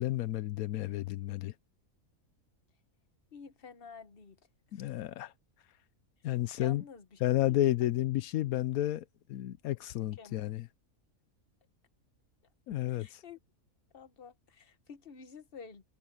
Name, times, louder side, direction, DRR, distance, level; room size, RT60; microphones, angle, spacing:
voice 1, 0.0-1.5 4.7-5.3 6.2-6.8 7.2-10.7 12.7-13.2, left 14 dB, 85° left, 1.1 m, -31 dB
voice 2, 3.3-4.4 4.7-5.0 6.6-7.2 7.5-7.6 7.9-8.0 10.0-10.5 13.0-13.4 13.9-15.9, left 5 dB, 40° left, 1.4 m, -50 dB
omnidirectional pair, 1.5 m